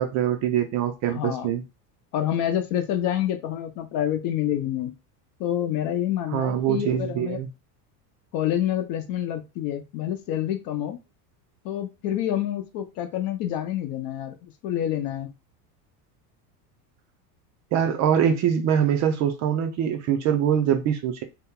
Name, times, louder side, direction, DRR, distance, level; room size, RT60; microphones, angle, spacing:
voice 1, 0.0-1.6 6.3-7.5 17.7-21.2, right 9 dB, 40° right, 0.5 m, -23 dB
voice 2, 1.1-1.5 2.1-4.9 5.4-7.4 8.3-11.0 11.6-15.3, left 11 dB, 50° left, 0.7 m, -27 dB
2.9 x 2.2 x 3.6 m
supercardioid pair, 145°, 46 cm